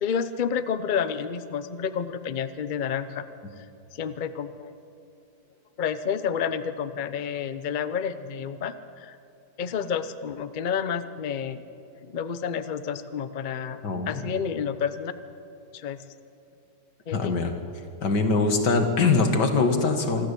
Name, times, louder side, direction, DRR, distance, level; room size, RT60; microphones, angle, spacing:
voice 1, 0.0-3.3 3.9-4.7 5.8-9.1 9.6-11.6 12.0-13.8 14.1-15.1 15.7-16.0 17.1-17.3, left 7 dB, 90° left, 11 dB, 0.4 m, -30 dB
voice 2, 13.8-14.3 17.1-17.5 18.0-20.3, left 3 dB, 60° left, 5 dB, 2.3 m, -23 dB
25.5 x 13.0 x 8.4 m, 2.7 s
omnidirectional pair, 2.1 m